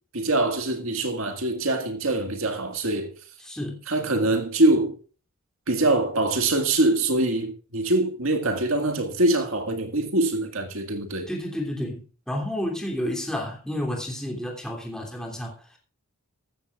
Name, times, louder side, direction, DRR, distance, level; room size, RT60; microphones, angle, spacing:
voice 1, 0.1-3.1 3.9-5.0 5.7-11.3, right 2 dB, 70° right, 1.9 m, -24 dB
voice 2, 3.4-3.8 11.3-15.8, left 1 dB, 5° left, 3.0 m, -31 dB
14.5 x 14.0 x 2.4 m
head